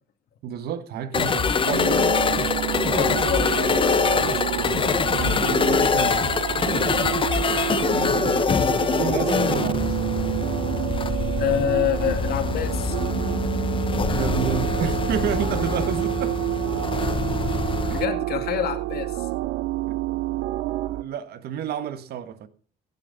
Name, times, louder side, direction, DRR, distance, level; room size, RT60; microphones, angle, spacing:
voice 1, 0.4-2.1 4.6-6.3 6.7-6.8 7.7-7.9 8.8-10.1 14.1-16.4 19.9-20.2 20.8-22.5, right 9 dB, 70° right, 1.4 m, -30 dB
sound 1, 1.1-18.0, left 6 dB, 30° left, 0.8 m, -24 dB
sound 2, 1.7-21.0, right 15 dB, 90° right, 0.6 m, -28 dB
voice 2, 3.0-3.7 4.1-4.6 8.1-8.3 11.4-13.0 17.9-19.3, left 10 dB, 65° left, 2.0 m, -27 dB
16.5 x 9.3 x 4.0 m
cardioid pair, 110°, 17 cm